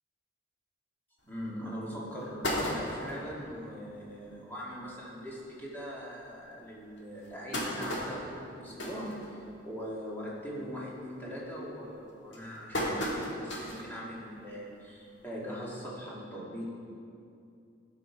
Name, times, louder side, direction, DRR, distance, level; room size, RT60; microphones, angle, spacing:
voice 1, 1.2-16.6, equal, 10° left, -6 dB, 1.8 m, -41 dB
sound 1, 1.3-1.4 1.9-2.0 2.2-3.3 3.8-3.9 4.2-4.3 4.6-4.8 5.5-5.6 6.1-6.2 7.0-9.8 10.2-10.5 10.9-11.3 11.9-13.9 14.3-14.4 15.6-15.7, equal, 65° left, 1.6 m, -35 dB
12.0 x 6.0 x 4.5 m, 2.5 s
head